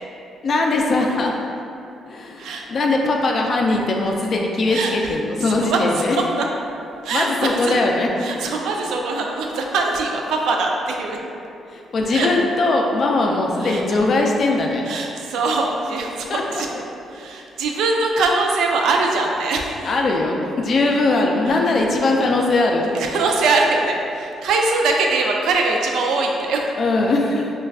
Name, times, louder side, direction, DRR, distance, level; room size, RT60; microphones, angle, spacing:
voice 1, 0.4-1.3 2.1-6.2 7.1-8.1 11.7-14.8 16.3-16.6 19.8-22.9 26.8-27.5, left 2 dB, 50° left, 1 dB, 0.3 m, -20 dB
voice 2, 5.4-5.8 6.4-6.5 7.0-7.7 8.2-11.2 12.1-12.3 13.6-14.0 14.8-16.7 17.1-19.9 20.2-20.3 21.5-21.6 22.9-26.7, right 3 dB, 80° right, 1 dB, 0.3 m, -22 dB
2.3 x 2.2 x 3.4 m, 2.7 s
cardioid pair, 90°, 0 cm